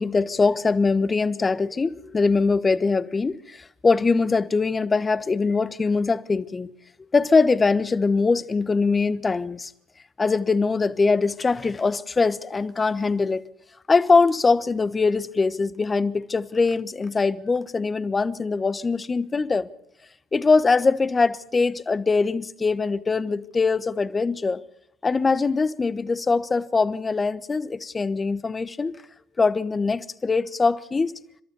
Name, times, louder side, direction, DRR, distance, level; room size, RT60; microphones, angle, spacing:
voice 1, 0.0-6.7 7.1-9.7 10.2-13.4 13.9-19.7 20.3-24.6 25.0-29.0 29.4-31.1, left 4 dB, 25° left, 1.1 m, -22 dB
30.0 x 13.0 x 6.9 m
hypercardioid pair, 65°, 0 cm